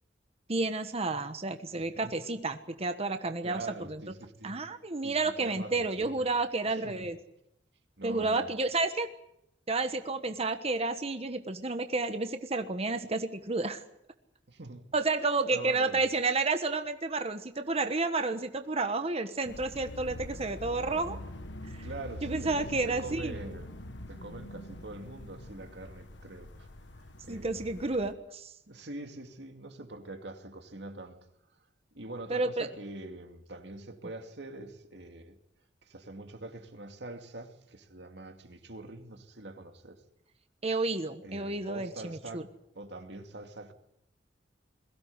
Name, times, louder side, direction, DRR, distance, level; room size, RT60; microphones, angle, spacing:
voice 1, 0.5-4.0 4.4-7.2 8.0-9.1 9.7-13.8 14.9-21.2 22.2-23.4 27.3-28.5 32.3-32.7 40.6-42.4, right 3 dB, 35° right, 1.3 m, -31 dB
voice 2, 1.7-2.1 3.4-4.6 5.0-6.3 6.7-7.1 8.0-8.6 14.5-14.9 15.5-16.1 21.8-23.7 24.1-26.7 27.2-27.7 28.7-31.2 31.9-35.4 35.8-40.0 41.2-42.4 42.7-43.7, right 2 dB, 70° right, 2.5 m, -44 dB
sound 1, 19.4-28.1, left 1 dB, 85° left, 1.4 m, -44 dB
22.0 x 16.0 x 9.6 m
head